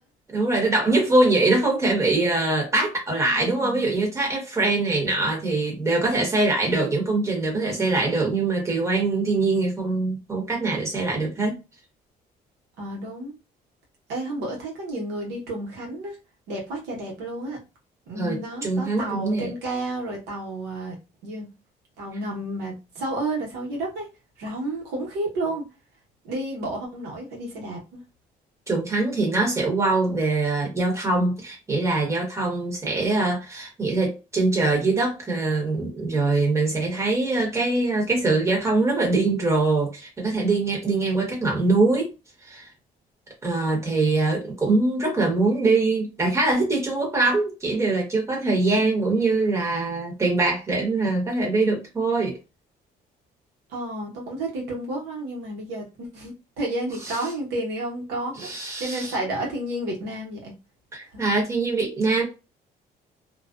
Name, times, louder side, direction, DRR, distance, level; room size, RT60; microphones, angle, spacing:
voice 1, 0.3-11.6 18.2-19.5 28.7-42.1 42.4-42.7 43.4-52.4 58.4-59.1 60.9-62.2, right 3 dB, 15° right, 1.1 m, -23 dB
voice 2, 3.3-3.9 7.5-7.7 12.8-13.3 14.1-16.2 16.5-17.6 18.1-20.9 21.2-21.5 22.0-24.1 24.4-25.7 26.2-28.0 53.7-58.5 58.8-60.5 61.1-61.2, right 1 dB, 85° right, 1.0 m, -31 dB
2.3 x 2.1 x 2.4 m
cardioid pair, 110°, 17 cm